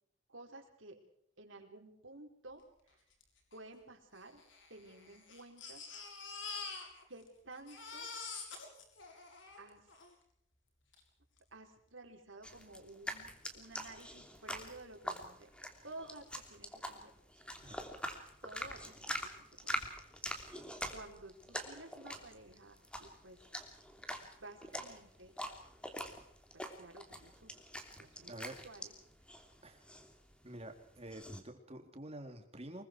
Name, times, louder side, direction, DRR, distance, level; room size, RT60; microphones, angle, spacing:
voice 1, 0.3-1.0 1.4-2.6 3.5-4.4 4.7-5.8 7.1-8.1 9.6-9.8 11.5-15.5 15.8-17.1 18.4-19.9 20.9-23.4 24.2-25.3 26.5-27.5 28.0-28.4 28.6-28.9, right 2 dB, 80° right, 3 dB, 4.7 m, -53 dB
Crying sobbing, 3.2-3.3 3.5-3.6 4.4-7.3 7.5-10.1 10.9-11.0 11.4-11.5, left 4 dB, 70° left, 6.5 m, -46 dB
sound 1, 12.4-31.4, equal, 5° left, 3.1 m, -45 dB
voice 2, 28.3-28.6 29.6-29.8 30.4-32.8, right 1 dB, 30° right, 5 dB, 3.5 m, -48 dB
25.5 x 23.0 x 4.7 m, 0.72 s
head